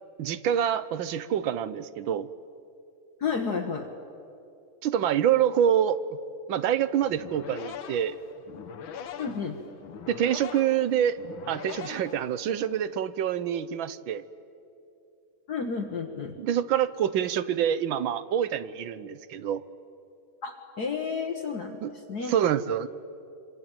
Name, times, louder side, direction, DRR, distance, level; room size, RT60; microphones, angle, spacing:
voice 1, 0.2-2.3 4.8-6.0 6.5-8.2 10.1-11.2 11.5-14.2 16.4-19.6 21.8-21.9 22.3-22.9, right 9 dB, 70° right, 15 dB, 1.5 m, -26 dB
voice 2, 3.2-3.9 9.2-9.6 15.5-16.3 20.4-21.8 22.1-22.3, left 5 dB, 50° left, 2 dB, 1.9 m, -31 dB
sound 1, 7.0-12.8, left 8 dB, 75° left, 1.9 m, -42 dB
26.0 x 25.5 x 9.0 m, 2.6 s
omnidirectional pair, 2.3 m